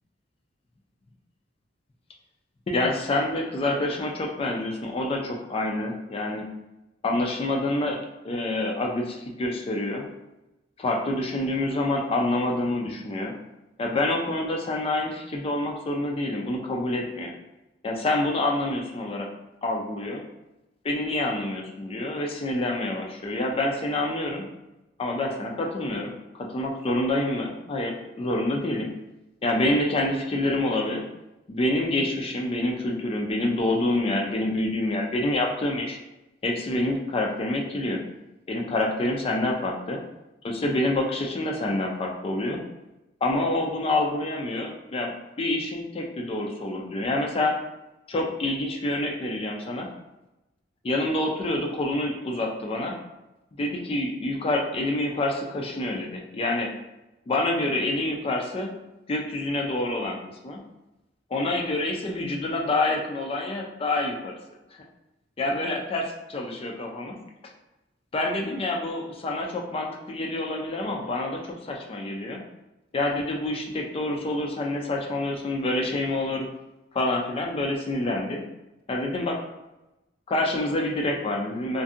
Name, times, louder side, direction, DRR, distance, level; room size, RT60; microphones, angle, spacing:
voice 1, 2.7-6.5 7.0-10.0 10.8-13.3 13.8-17.3 17.8-19.3 19.6-20.2 20.8-24.4 25.0-28.9 29.4-31.0 31.5-36.0 36.4-38.0 38.5-40.0 40.4-42.6 43.2-47.5 48.1-49.9 50.8-53.0 53.6-56.7 57.3-58.7 59.1-60.2 60.4-60.6 61.3-64.4 65.4-67.2 68.1-72.4 72.9-76.5 76.9-78.4 78.9-79.4 80.3-81.8, left 1 dB, 30° left, 1 dB, 0.3 m, -27 dB
2.6 x 2.5 x 2.4 m, 0.97 s
head